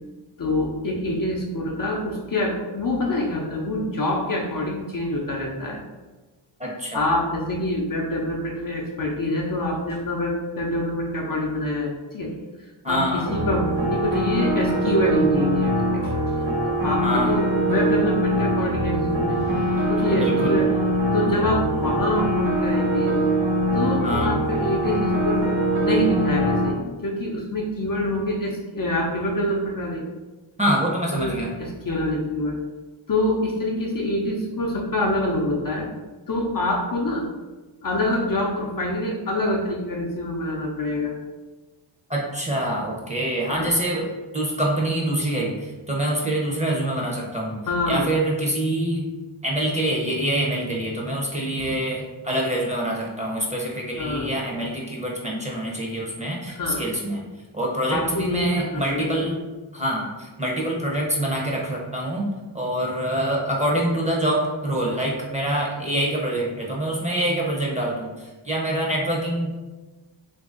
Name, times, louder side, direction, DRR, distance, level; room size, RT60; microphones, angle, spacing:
voice 1, 0.4-5.8 6.9-12.3 12.9-16.2 16.6-23.2 23.7-30.0 31.1-32.6 33.1-35.9 36.3-37.3 37.8-41.2 43.5-43.7 47.7-48.1 51.6-51.7 54.0-54.3 56.5-56.8 57.9-59.2, left 1 dB, 45° left, -1 dB, 0.6 m, -26 dB
voice 2, 6.6-7.0 12.8-13.3 17.0-17.3 20.2-20.5 24.0-24.4 30.6-31.5 42.1-44.1 44.3-47.6 47.9-49.1 49.4-57.2 57.5-59.4 59.7-62.3 62.5-69.5, right 1 dB, 15° right, -3 dB, 0.7 m, -25 dB
sound 1, 13.3-26.7, right 1 dB, 75° right, 1.0 m, -23 dB
2.8 x 2.6 x 3.7 m, 1.2 s
wide cardioid pair, 80°, 48 cm